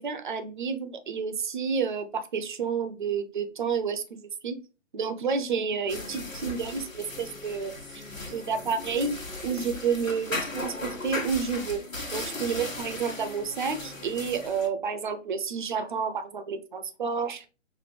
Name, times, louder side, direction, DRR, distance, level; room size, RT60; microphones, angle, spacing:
voice 1, 0.0-4.6 4.9-9.2 9.4-17.5, right 6 dB, 40° right, 8 dB, 0.6 m, -30 dB
sound 1, 5.9-14.7, left 2 dB, 90° left, 1.4 m, -37 dB
6.1 x 2.5 x 3.2 m, 0.33 s
figure-of-eight pair, 135°, 39 cm